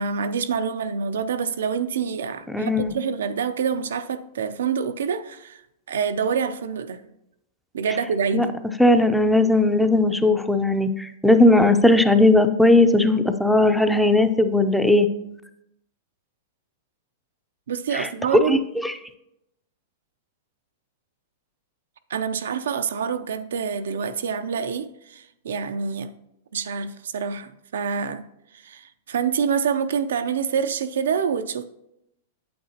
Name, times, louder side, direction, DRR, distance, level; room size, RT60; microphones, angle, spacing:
voice 1, 0.0-5.6 5.9-7.0 7.7-8.5 17.7-18.6 22.1-26.1 26.5-28.2 28.5-31.6, right 6 dB, 85° right, 0.5 m, -26 dB
voice 2, 2.5-3.0 8.3-8.5 8.8-15.1 17.9-18.1 18.5-18.9, left 2 dB, ahead, 0.5 m, -18 dB
8.5 x 7.9 x 2.8 m
hypercardioid pair, 130°, 0 cm